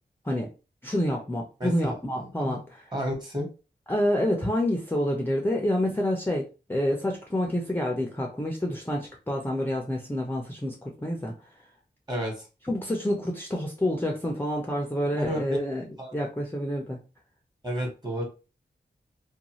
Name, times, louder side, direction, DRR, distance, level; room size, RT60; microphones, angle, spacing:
voice 1, 0.8-2.9 3.9-11.3 12.7-15.8 16.1-17.0, left 1 dB, 10° left, 0 dB, 0.6 m, -28 dB
voice 2, 1.6-2.6 2.9-3.5 12.1-12.5 15.1-15.6 16.0-16.1 17.6-18.2, equal, 25° right, 1 dB, 1.3 m, -31 dB
2.6 x 2.3 x 2.9 m, 0.32 s
wide cardioid pair, 65°, 18 cm